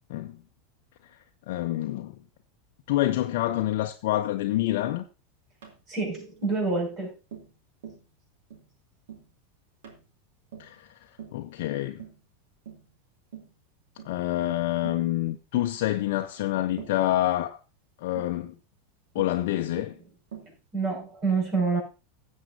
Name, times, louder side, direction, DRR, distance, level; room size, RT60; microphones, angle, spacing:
voice 1, 0.1-0.4 1.0-1.1 1.5-2.2 2.9-5.0 10.6-12.0 14.0-17.6 18.0-18.6 19.1-20.0, left 14 dB, 65° left, 0.6 m, -27 dB
Tap, 5.6-5.8 6.4-6.6 7.3-7.6 7.8-8.1 8.5-8.7 9.1-9.3 9.8-10.1 10.5-10.8 11.2-11.4 12.0-12.2 12.7-12.9 13.3-13.6 14.0-14.2 14.8-15.1 15.5-15.7 16.8-17.1 18.2-18.4 19.2-19.4 19.8-20.0 20.3-20.6, right 8 dB, 70° right, 2.2 m, -44 dB
voice 2, 5.9-7.1 20.7-21.8, right 4 dB, 45° right, 5.9 m, -27 dB
16.5 x 7.4 x 2.7 m
hypercardioid pair, 90°, 0 cm